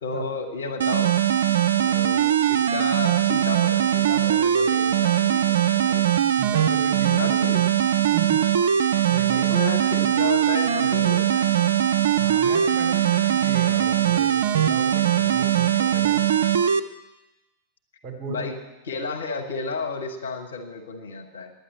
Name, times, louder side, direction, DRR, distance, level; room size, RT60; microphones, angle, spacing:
voice 1, 0.0-1.2 1.8-6.0 7.1-7.7 9.4-11.8 15.4-15.6 18.3-18.6 18.9-21.5, left 3 dB, 70° left, 3 dB, 1.3 m, -32 dB
sound 1, 0.8-16.8, right 10 dB, 65° right, 0.4 m, -21 dB
voice 2, 6.3-7.3 8.1-8.5 9.1-9.6 12.2-16.2 18.0-18.5, right 5 dB, 25° right, -1 dB, 3.6 m, -35 dB
10.0 x 9.6 x 7.3 m, 1.0 s
figure-of-eight pair, 90°, 0 cm